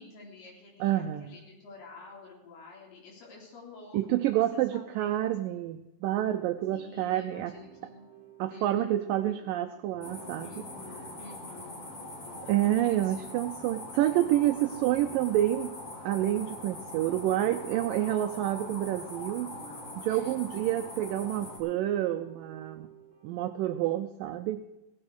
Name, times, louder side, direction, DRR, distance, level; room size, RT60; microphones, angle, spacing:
voice 1, 0.0-4.0 4.2-5.3 6.7-8.0 8.5-9.0 10.4-11.8 12.2-13.2 20.1-20.4, left 3 dB, 75° left, -3 dB, 5.6 m, -49 dB
voice 2, 0.8-1.4 3.9-7.5 8.4-10.6 12.5-15.7 16.0-19.5 20.0-22.9 23.2-24.6, right 13 dB, 80° right, 9 dB, 2.0 m, -28 dB
sound 1, 6.4-24.1, right 6 dB, 40° right, 4.8 m, -55 dB
sound 2, 10.0-21.6, left 2 dB, 40° left, 4.0 m, -43 dB
17.0 x 13.5 x 4.7 m, 1.0 s
omnidirectional pair, 4.5 m